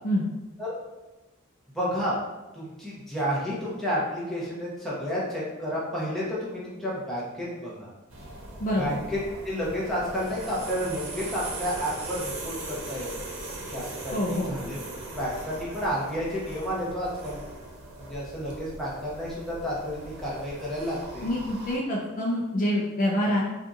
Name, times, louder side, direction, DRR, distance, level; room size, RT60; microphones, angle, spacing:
voice 1, 1.7-2.2 2.5-7.9 8.8-9.2 9.4-13.1 13.7-14.8 15.1-17.4 18.0-21.3, equal, ahead, -8 dB, 0.8 m, -31 dB
sound 1, 8.1-21.8, right 2 dB, 75° right, 0.7 m, -40 dB
voice 2, 8.6-9.0 14.1-14.5 21.2-23.4, equal, 40° left, -3 dB, 0.4 m, -26 dB
2.7 x 2.5 x 3.6 m, 1.1 s
head